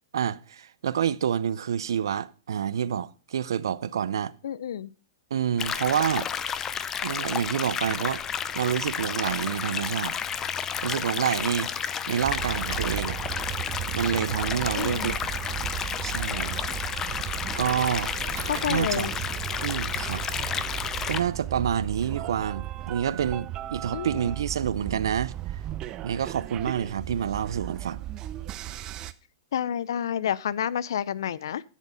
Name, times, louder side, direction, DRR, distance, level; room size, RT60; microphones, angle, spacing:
voice 1, 0.1-4.4 5.3-6.3 7.0-8.2 8.5-10.1 10.8-11.7 12.1-13.2 13.9-15.2 16.0-16.7 17.6-18.1 18.7-19.1 19.6-20.2 21.1-25.3 26.0-28.0, right 8 dB, 85° right, 0.5 m, -28 dB
voice 2, 4.4-4.9 14.8-15.1 18.4-19.1 23.9-24.1 29.5-31.6, left 9 dB, 80° left, 0.5 m, -29 dB
sound 1, 5.6-21.2, left 7 dB, 20° left, 0.5 m, -31 dB
sound 2, 9.1-10.2 12.2-13.5 14.7-14.8 15.4-16.5 18.1-19.3 19.6-21.2 21.7-23.3, right 10 dB, 60° right, 1.8 m, -45 dB
sound 3, 12.2-29.1, right 14 dB, 30° right, 0.5 m, -36 dB
10.5 x 6.4 x 5.1 m
hypercardioid pair, 140°, 2 cm